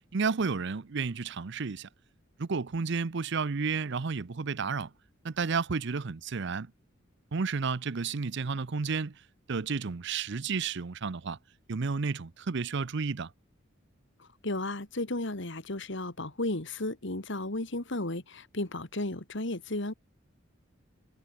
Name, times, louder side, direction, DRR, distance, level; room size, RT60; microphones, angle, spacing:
voice 1, 0.1-1.9 2.4-4.9 5.2-6.7 7.3-9.2 9.5-11.4 11.7-13.3, right 5 dB, 65° right, 0.7 m, -31 dB
voice 2, 14.2-19.9, left 2 dB, 65° left, 2.5 m, -34 dB
head